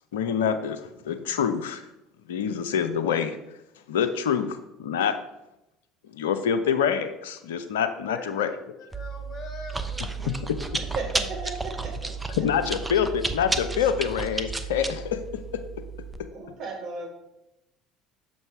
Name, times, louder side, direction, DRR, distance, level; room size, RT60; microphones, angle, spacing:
voice 1, 0.1-0.8 1.0-1.8 2.3-3.4 3.9-5.2 6.1-8.5 12.4-15.2, left 7 dB, 75° left, 10 dB, 0.6 m, -26 dB
voice 2, 8.1-8.5 8.8-10.9, left 3 dB, 35° left, 3 dB, 1.6 m, -43 dB
Chewing mastication, 8.9-16.2, right 3 dB, 15° right, 0.6 m, -32 dB
voice 3, 10.8-12.1 12.4-12.5 16.3-17.1, right 3 dB, 55° right, -1 dB, 2.2 m, -35 dB
6.5 x 5.3 x 4.6 m, 0.90 s
figure-of-eight pair, 60°, 0 cm